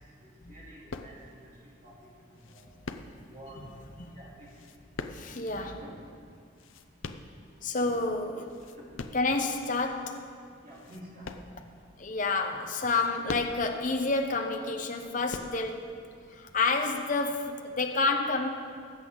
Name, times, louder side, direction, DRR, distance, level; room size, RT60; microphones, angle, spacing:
voice 1, 0.5-1.9 2.4-2.7 3.3-3.6 4.1-4.5 5.7-5.9 7.7-7.9 10.6-11.3, right 1 dB, 40° right, -6 dB, 3.1 m, -49 dB
sound 1, 0.9-1.5 2.4-3.5 4.4-5.6 6.3-7.8 8.3-9.4 9.9-10.0 10.7-12.0 12.7-13.9 14.8-15.9 16.7-17.1, left 3 dB, 75° left, 0.6 m, -42 dB
voice 2, 5.1-5.8 7.6-8.4 9.1-10.2 12.0-15.8 16.3-18.5, left 3 dB, 40° left, 4 dB, 0.9 m, -29 dB
19.5 x 8.1 x 3.9 m, 2.2 s
head